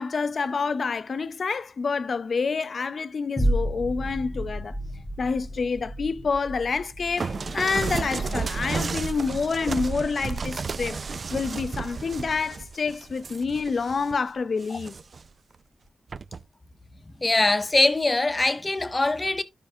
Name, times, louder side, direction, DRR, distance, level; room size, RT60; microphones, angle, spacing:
voice 1, 0.0-4.8 5.2-11.0 11.3-14.9, left 5 dB, 60° left, 0.5 m, -28 dB
sound 1, 3.4-11.9 12.4-12.5, equal, ahead, 1.6 m, -33 dB
sound 2, 7.2-14.2 14.6-15.3 16.1-16.4, right 4 dB, 55° right, 0.4 m, -32 dB
voice 2, 17.2-19.4, left 2 dB, 25° left, 0.7 m, -22 dB
12.0 x 5.2 x 2.7 m
wide cardioid pair, 100°, 0 cm